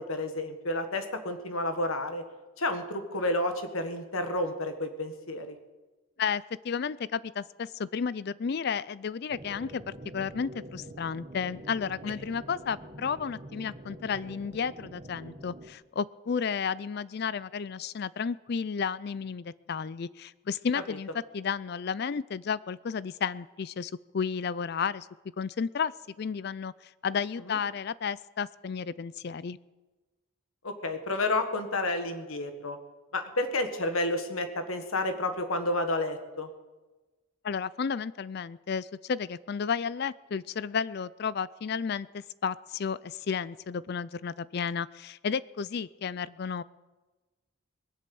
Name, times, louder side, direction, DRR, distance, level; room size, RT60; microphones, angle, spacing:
voice 1, 0.0-2.2 2.6-5.5 27.5-27.6 30.6-32.8 33.1-36.5, left 2 dB, 90° left, 7 dB, 1.7 m, -30 dB
voice 2, 6.2-9.8 10.1-25.1 25.4-25.9 26.2-29.6 37.4-46.6, left 6 dB, 50° left, 19 dB, 0.4 m, -32 dB
sound 1, 9.3-15.7, right 1 dB, 30° right, 1.2 m, -46 dB
21.0 x 7.5 x 7.8 m, 1.2 s
head